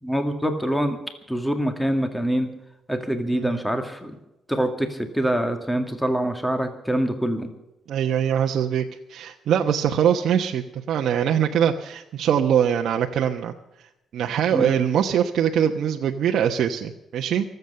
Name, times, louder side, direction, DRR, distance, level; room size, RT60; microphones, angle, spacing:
voice 1, 0.0-1.0 1.3-2.5 2.9-4.2 4.5-7.5 14.5-14.7, right 1 dB, 5° left, 6 dB, 2.1 m, -25 dB
voice 2, 7.9-13.5 13.8-17.4, right 9 dB, 70° right, 2 dB, 1.0 m, -23 dB
24.0 x 8.2 x 6.9 m, 0.92 s
cardioid pair, 90°, 0 cm